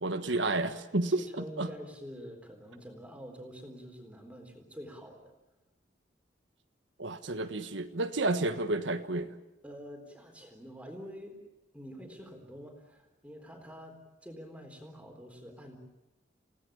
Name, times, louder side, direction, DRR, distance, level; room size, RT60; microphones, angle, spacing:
voice 1, 0.0-1.7 7.0-9.3, right 2 dB, 90° right, 8 dB, 1.4 m, -31 dB
voice 2, 1.2-5.3 9.6-11.4 11.7-15.8, equal, 5° right, 3 dB, 3.9 m, -47 dB
29.0 x 18.0 x 8.7 m, 1.0 s
head